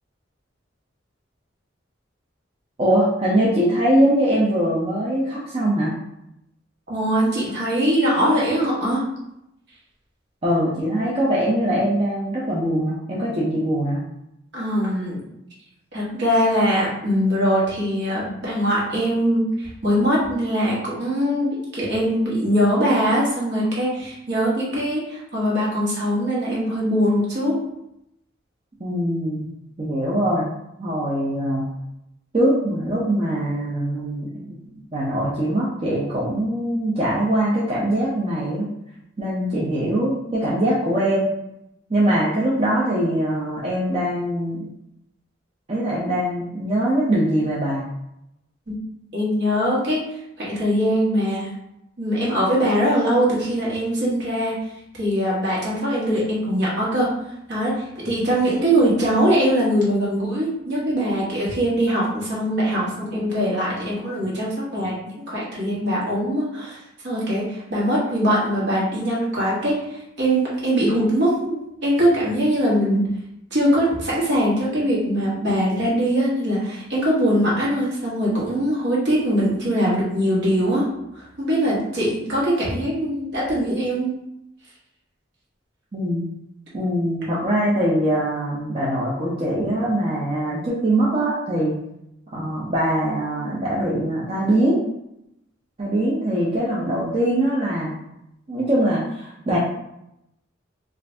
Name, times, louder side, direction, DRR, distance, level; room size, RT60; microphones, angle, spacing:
voice 1, 2.8-5.9 10.4-14.0 28.8-29.5 29.8-30.5 30.8-31.7 32.3-34.3 34.7-38.7 39.2-41.3 41.9-44.6 45.7-47.9 85.9-86.2 86.7-91.7 92.3-94.8 95.8-97.9 98.5-99.6, right 1 dB, 30° right, -7 dB, 0.5 m, -22 dB
voice 2, 6.9-9.0 14.5-15.2 15.9-27.6 48.7-48.8 49.1-50.0 50.4-51.5 52.0-54.5 55.0-57.1 57.5-65.0 65.3-69.9 70.2-71.6 71.8-73.1 73.5-80.9 81.2-84.1, equal, 60° right, -6 dB, 1.2 m, -22 dB
2.5 x 2.5 x 3.2 m, 0.81 s
head